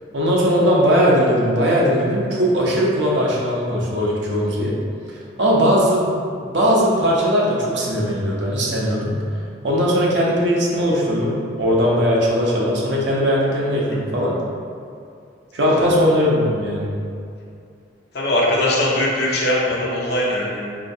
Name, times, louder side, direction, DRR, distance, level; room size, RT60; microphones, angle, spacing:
voice 1, 0.1-4.7 5.4-6.1 6.5-9.1 9.6-14.3 15.5-16.9, equal, 70° right, -4 dB, 0.8 m, -19 dB
voice 2, 18.1-20.8, left 1 dB, 60° left, -4 dB, 0.7 m, -21 dB
4.4 x 2.8 x 2.7 m, 2.4 s
head